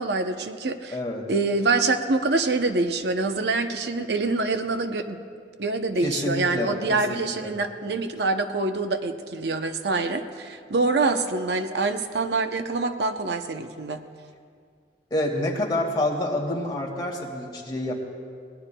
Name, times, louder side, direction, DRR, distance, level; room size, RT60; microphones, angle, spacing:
voice 1, 0.0-1.0 1.3-5.2 5.6-14.0, right 3 dB, 70° right, 8 dB, 0.7 m, -25 dB
voice 2, 0.9-1.3 6.0-7.5 15.1-17.9, left 1 dB, 25° left, -2 dB, 1.9 m, -28 dB
23.0 x 18.5 x 2.3 m, 2.2 s
head